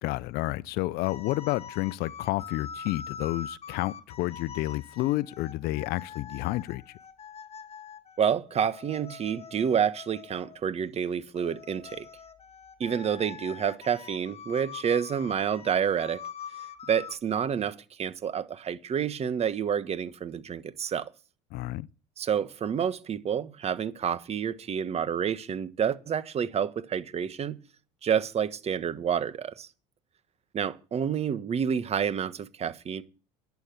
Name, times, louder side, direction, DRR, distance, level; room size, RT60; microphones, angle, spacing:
voice 1, 0.0-6.8 21.5-21.9, left 18 dB, 65° left, 0.7 m, -30 dB
sound 1, 1.0-10.6 11.4-17.2, left 7 dB, 35° left, 2.0 m, -44 dB
voice 2, 8.2-12.1 12.8-16.2 16.9-21.1 22.2-27.6 28.0-29.7 30.5-33.0, right 8 dB, 40° right, 1.4 m, -29 dB
11.5 x 8.3 x 8.3 m
supercardioid pair, 90°, 17 cm